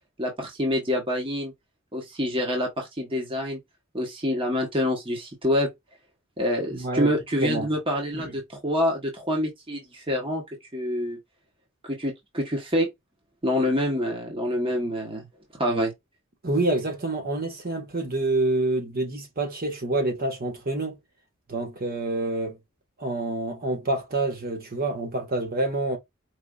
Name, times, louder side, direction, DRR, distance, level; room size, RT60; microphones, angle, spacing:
voice 1, 0.2-1.5 1.9-3.6 3.9-5.7 6.4-10.4 10.7-11.2 11.8-12.9 13.4-15.3 15.6-15.9, equal, 25° right, 1.1 m, -26 dB
voice 2, 6.7-7.1 7.4-7.7 8.1-8.3 16.4-21.0 21.5-22.6 23.0-26.0, right 2 dB, 45° right, 1.4 m, -27 dB
4.8 x 2.6 x 2.4 m
head